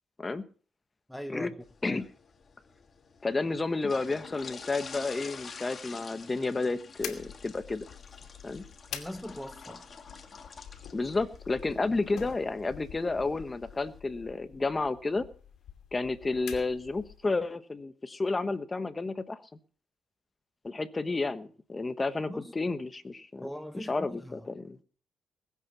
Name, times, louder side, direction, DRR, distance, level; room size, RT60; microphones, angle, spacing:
voice 1, 1.1-1.6 1.8-2.0 8.9-9.9 22.3-22.5 23.4-24.5, equal, ahead, 1.0 m, -41 dB
sound 1, 1.6-14.0, left 5 dB, 40° left, 2.3 m, -48 dB
voice 2, 3.2-7.8 8.4-8.6 10.9-15.2 15.9-19.4 20.6-23.5 23.7-24.8, left 3 dB, 25° left, 1.1 m, -31 dB
sound 2, 7.0-17.3, left 9 dB, 80° left, 2.6 m, -47 dB
20.5 x 8.5 x 5.8 m
cardioid pair, 90°, 0 cm